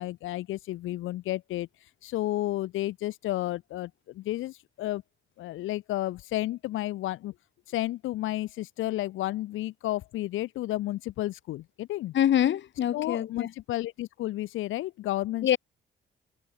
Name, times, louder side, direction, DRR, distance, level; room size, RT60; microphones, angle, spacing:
voice 1, 0.0-1.7 2.0-5.0 5.4-7.3 7.7-12.1 12.9-15.6, left 15 dB, 90° left, 4.9 m, -32 dB
voice 2, 12.1-13.5 15.4-15.6, left 10 dB, 70° left, 5.4 m, -25 dB
cardioid pair, 90°, 20 cm